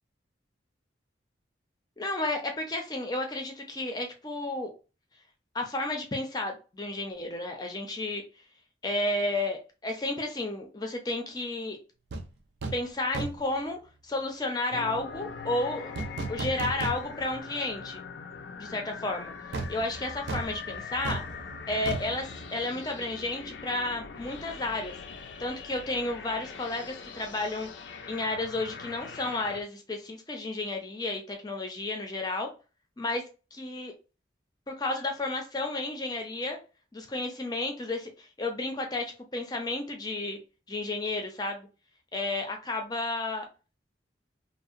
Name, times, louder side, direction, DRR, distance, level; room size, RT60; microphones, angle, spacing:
voice 1, 2.0-4.7 5.5-8.2 8.8-11.8 12.7-15.9 16.3-18.0 18.6-19.3 19.7-21.2 21.7-25.0 25.4-27.7 28.1-32.5 33.0-33.2 33.5-33.9 34.7-36.6 36.9-40.4 40.7-41.7 42.1-43.5, left 2 dB, 20° left, 3 dB, 0.5 m, -32 dB
sound 1, 12.1-12.3 12.6-12.9 13.1-13.6 16.0-17.4 17.8-17.9 19.5-23.2 23.4-23.6, right 3 dB, 70° right, 0.4 m, -36 dB
sound 2, 14.7-29.6, left 5 dB, 80° left, 0.4 m, -42 dB
2.7 x 2.0 x 2.5 m, 0.32 s
head